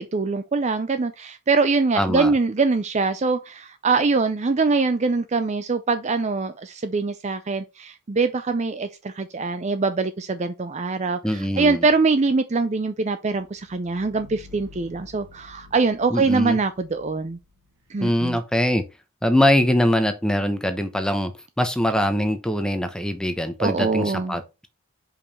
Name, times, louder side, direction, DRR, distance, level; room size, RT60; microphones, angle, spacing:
voice 1, 0.0-17.4 17.9-18.4 23.6-24.4, right 4 dB, 30° right, 0.4 m, -23 dB
voice 2, 1.9-2.3 11.2-11.8 16.1-16.6 18.0-18.9 19.2-21.3 21.6-24.7, left 1 dB, 5° left, 0.9 m, -22 dB
sound 1, 13.4-18.1, left 2 dB, 60° right, 2.2 m, -49 dB
5.4 x 4.8 x 5.2 m
head